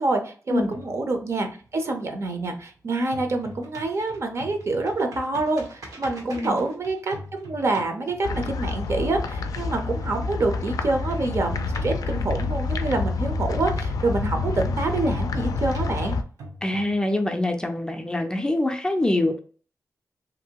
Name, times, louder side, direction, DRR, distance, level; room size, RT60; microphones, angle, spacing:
voice 1, 0.0-16.2, right 2 dB, 50° right, 5 dB, 0.6 m, -27 dB
sound 1, 0.7-2.7 3.0-9.5 11.1-13.5 15.1-17.5, right 1 dB, 85° right, 0.9 m, -42 dB
sound 2, 8.2-16.2, left 3 dB, 90° left, 0.3 m, -28 dB
voice 2, 16.6-19.4, left 1 dB, 15° left, 5 dB, 0.4 m, -24 dB
2.9 x 2.6 x 2.8 m, 0.41 s
wide cardioid pair, 115°, 6 cm